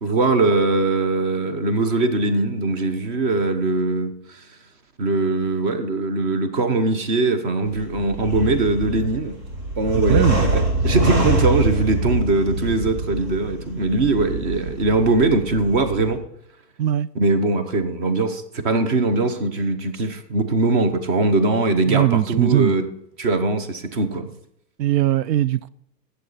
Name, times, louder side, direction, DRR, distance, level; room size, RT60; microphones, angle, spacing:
voice 1, 0.0-4.4 5.0-9.4 9.8-16.2 17.1-22.9 23.2-24.3, right 3 dB, 30° right, 0.9 m, -21 dB
sound 1, 7.7-16.2, right 1 dB, 55° right, 3.4 m, -24 dB
voice 2, 10.1-10.4 16.8-17.1 21.9-22.7 24.8-25.7, right 12 dB, 80° right, 0.6 m, -19 dB
11.5 x 8.0 x 4.1 m
supercardioid pair, 170°, 50 cm